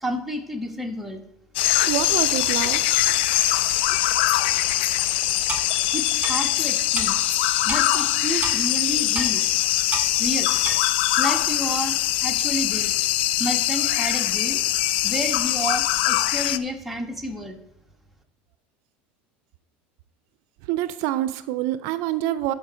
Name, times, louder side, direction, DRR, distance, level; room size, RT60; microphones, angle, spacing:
voice 1, 0.0-1.2 5.9-7.1 7.6-9.4 10.2-10.5 11.2-12.9 13.4-14.6 15.0-17.6, equal, ahead, 2 dB, 1.5 m, -30 dB
sound 1, 1.6-16.6, left 14 dB, 80° left, 0.4 m, -22 dB
voice 2, 1.9-3.0 20.7-22.5, right 13 dB, 70° right, 14 dB, 0.5 m, -26 dB
Clock, 5.5-5.7 6.2-6.3 7.0-7.1 7.7-7.8 8.4-8.6 9.1-9.3 9.9-10.1 10.6-10.8, right 3 dB, 25° right, 2.6 m, -29 dB
13.0 x 5.2 x 4.4 m, 0.87 s
supercardioid pair, 95°, 6 cm